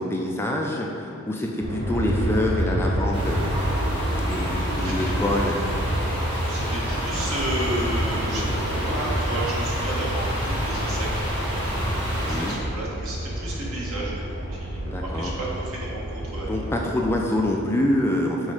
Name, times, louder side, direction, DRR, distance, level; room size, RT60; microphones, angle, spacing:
voice 1, 0.0-3.4 4.2-5.6 12.3-12.5 14.9-15.3 16.4-18.5, left 1 dB, 10° left, -1 dB, 0.4 m, -26 dB
Aircraft, 1.6-17.8, equal, 55° right, 0.9 m, -29 dB
sound 1, 3.1-12.5, equal, 20° right, 1.2 m, -30 dB
voice 2, 4.8-5.1 6.5-8.5 8.9-16.8, right 1 dB, 75° right, -5 dB, 1.5 m, -33 dB
6.3 x 3.8 x 4.9 m, 2.6 s
head